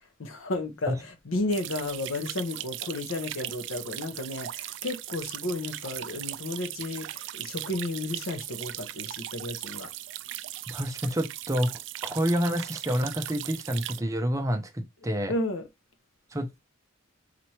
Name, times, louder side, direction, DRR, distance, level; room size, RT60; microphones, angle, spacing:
voice 1, 0.2-9.9 15.3-15.7, left 2 dB, 90° left, 0.9 m, -33 dB
sound 1, 1.5-14.0, right 14 dB, 65° right, 0.3 m, -38 dB
voice 2, 10.7-11.7 12.0-15.3 16.3-16.6, equal, 15° right, 0.7 m, -28 dB
4.1 x 3.1 x 2.9 m
head